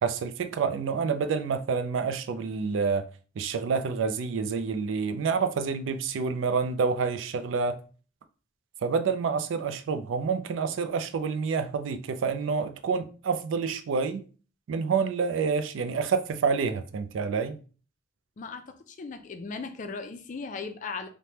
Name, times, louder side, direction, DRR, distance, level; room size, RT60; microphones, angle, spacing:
voice 1, 0.0-3.0 3.4-7.8 8.8-14.2 14.7-17.6, right 5 dB, 80° right, 0.3 m, -28 dB
voice 2, 18.4-21.1, left 4 dB, 40° left, 0.3 m, -37 dB
3.2 x 2.1 x 2.8 m
head